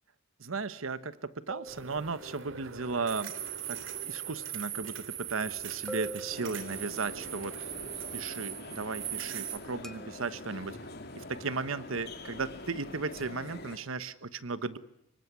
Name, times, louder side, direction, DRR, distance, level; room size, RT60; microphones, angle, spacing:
voice 1, 0.4-3.3 3.7-7.5 8.1-10.8 11.1-14.8, right 4 dB, 90° right, 14 dB, 1.1 m, -35 dB
sound 1, 1.5-2.6 5.9-7.3 9.8-10.6 13.2-13.5, right 1 dB, ahead, 1.3 m, -45 dB
sound 2, 1.7-9.6, right 10 dB, 70° right, 2.5 m, -40 dB
sound 3, 6.3-13.8, left 2 dB, 55° left, 3.5 m, -45 dB
25.0 x 23.5 x 9.6 m, 0.79 s
head